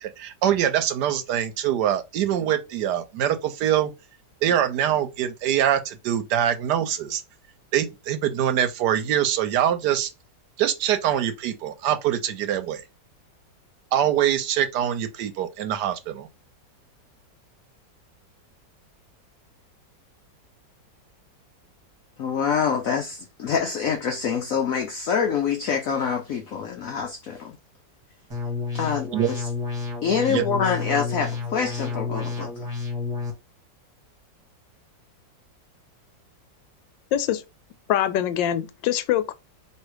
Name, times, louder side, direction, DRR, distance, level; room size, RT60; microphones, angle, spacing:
voice 1, 0.0-3.9 4.4-7.2 7.7-10.1 10.6-12.8 13.9-16.3 29.1-29.3 30.3-30.4, right 10 dB, 70° right, 1.2 m, -24 dB
voice 2, 22.2-27.6 28.7-29.5 30.0-32.7, left 6 dB, 60° left, 0.9 m, -26 dB
sound 1, 28.3-33.3, left 4 dB, 20° right, 1.3 m, -30 dB
voice 3, 37.1-37.4 37.9-39.3, left 11 dB, 85° left, 1.3 m, -23 dB
3.2 x 2.9 x 4.6 m
omnidirectional pair, 2.0 m